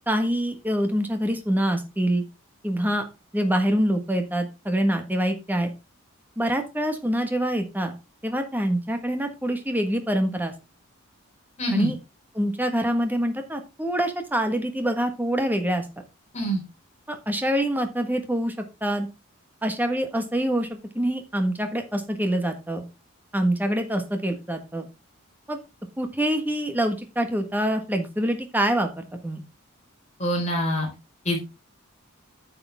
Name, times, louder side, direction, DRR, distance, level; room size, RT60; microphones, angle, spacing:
voice 1, 0.1-2.2 2.6-3.1 3.3-5.7 6.4-7.9 8.2-10.5 11.7-12.0 12.3-15.8 17.1-18.5 18.8-19.1 19.6-22.8 23.3-24.9 25.5-25.6 26.0-29.4, right 1 dB, 10° right, 6 dB, 1.5 m, -25 dB
voice 2, 11.6-11.9 16.3-16.6 30.2-30.9 31.2-31.4, equal, 35° left, 0 dB, 4.5 m, -25 dB
9.7 x 6.9 x 3.6 m, 0.26 s
head